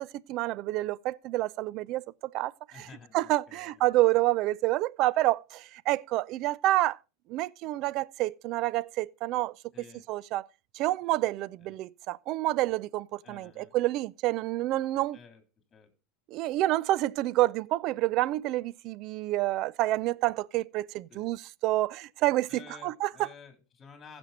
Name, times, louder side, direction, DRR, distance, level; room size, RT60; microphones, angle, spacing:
voice 1, 0.0-2.0 2.3-2.9 3.1-7.0 7.3-9.5 10.1-10.4 10.7-15.2 16.3-22.5 22.8-23.1, right 16 dB, 50° right, 0.4 m, -28 dB
voice 2, 2.7-3.9 9.7-10.1 11.6-11.8 13.2-13.7 15.1-15.4 15.7-15.9 21.1-21.3 22.5-24.2, left 5 dB, 25° left, 3.2 m, -52 dB
15.5 x 6.2 x 4.0 m
hypercardioid pair, 105°, 0 cm